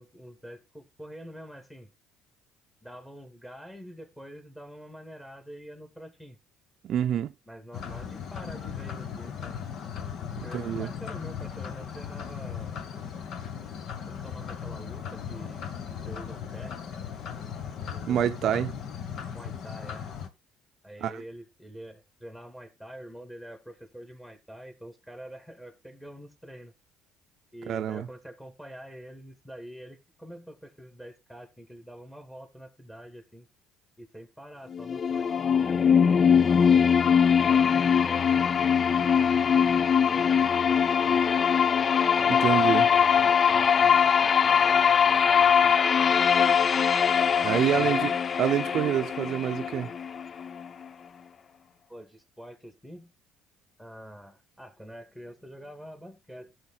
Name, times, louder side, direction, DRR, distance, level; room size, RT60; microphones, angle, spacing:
voice 1, 0.0-1.9 2.8-6.4 7.5-9.6 10.4-12.8 14.0-16.8 17.9-18.6 19.3-20.1 20.8-26.7 27.5-33.5 34.0-36.1 36.5-36.9 37.4-41.2 42.2-45.8 51.9-53.1 53.8-56.5, equal, 10° left, 2.5 m, -46 dB
voice 2, 6.8-7.3 10.4-10.9 18.1-18.7 21.0-21.2 27.7-28.1 42.3-42.9 47.4-49.9, right 10 dB, 60° right, 0.5 m, -27 dB
sound 1, 7.7-20.3, left 7 dB, 60° left, 1.2 m, -37 dB
sound 2, 34.7-50.7, left 7 dB, 40° left, 0.4 m, -22 dB
17.0 x 6.5 x 2.3 m
supercardioid pair, 70°, 0 cm